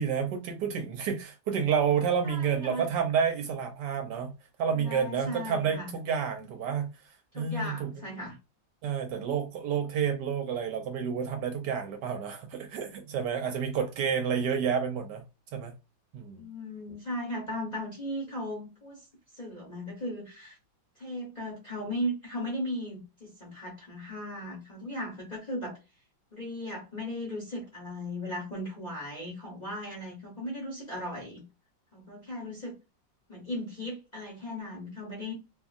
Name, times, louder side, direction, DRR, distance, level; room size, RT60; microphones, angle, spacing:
voice 1, 0.0-4.3 4.6-6.9 7.3-7.9 8.8-15.2 15.5-15.7 16.1-16.4, right 7 dB, 70° right, 1.1 m, -29 dB
voice 2, 2.2-2.9 4.8-5.9 7.3-8.4 16.4-19.1 19.4-20.6 21.0-25.8 26.3-31.4 31.9-32.8 33.3-35.3, left 1 dB, 35° left, 0.7 m, -37 dB
2.7 x 2.7 x 2.4 m
omnidirectional pair, 2.1 m